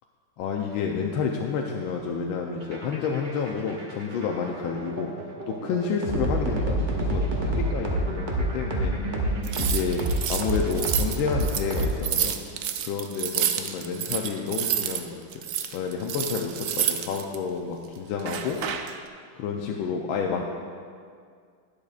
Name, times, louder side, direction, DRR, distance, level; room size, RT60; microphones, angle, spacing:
voice 1, 0.4-5.1 5.5-9.0 9.3-12.3 12.9-15.4 15.7-18.6 19.4-20.4, left 6 dB, 85° left, 1 dB, 1.4 m, -30 dB
sound 1, 2.6-12.4, right 1 dB, 40° right, 0.7 m, -28 dB
sound 2, 9.4-15.0 15.3-17.4 18.2-19.0, right 10 dB, 80° right, 0.8 m, -29 dB
11.5 x 10.5 x 2.4 m, 2.1 s
omnidirectional pair, 2.2 m